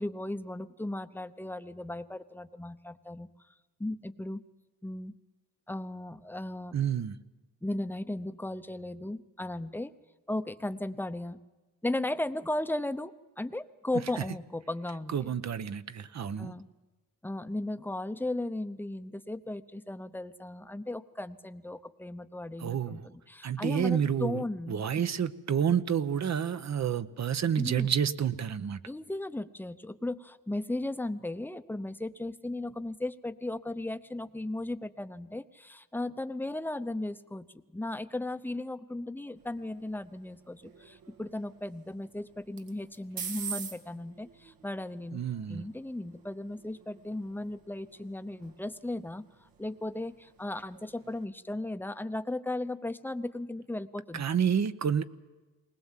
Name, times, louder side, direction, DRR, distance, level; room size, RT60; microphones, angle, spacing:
voice 1, 0.0-3.3 3.8-4.4 4.8-5.1 5.7-6.8 7.6-9.9 10.3-11.4 11.8-15.3 16.4-16.7 17.2-24.8 27.5-27.9 28.8-37.5 37.7-45.2 45.5-54.2, left 1 dB, 5° left, 0.7 m, -36 dB
voice 2, 6.7-7.2 15.1-16.5 22.6-23.1 23.4-28.8 45.1-45.6 54.1-55.0, right 8 dB, 50° right, 0.9 m, -29 dB
sound 1, 39.4-51.3, right 6 dB, 80° right, 2.0 m, -47 dB
20.5 x 20.0 x 7.4 m
cardioid pair, 105°, 35 cm